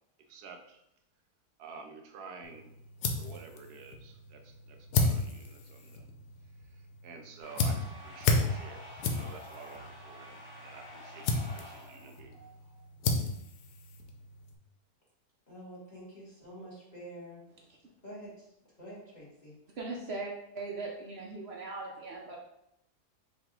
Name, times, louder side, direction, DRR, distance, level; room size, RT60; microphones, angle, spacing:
voice 1, 0.3-0.8 1.6-2.7 3.1-6.1 6.6-12.4, right 4 dB, 80° right, 5 dB, 1.1 m, -50 dB
sound 1, 2.4-14.6, left 3 dB, 80° left, 1.2 m, -34 dB
sound 2, 7.4-12.9, equal, 40° left, 1.5 m, -50 dB
voice 2, 15.5-17.4 18.0-18.5 18.8-19.5, equal, 25° left, -8 dB, 1.7 m, -47 dB
voice 3, 19.8-22.4, right 3 dB, 55° right, -1 dB, 0.7 m, -39 dB
5.3 x 2.6 x 3.7 m, 0.81 s
omnidirectional pair, 1.7 m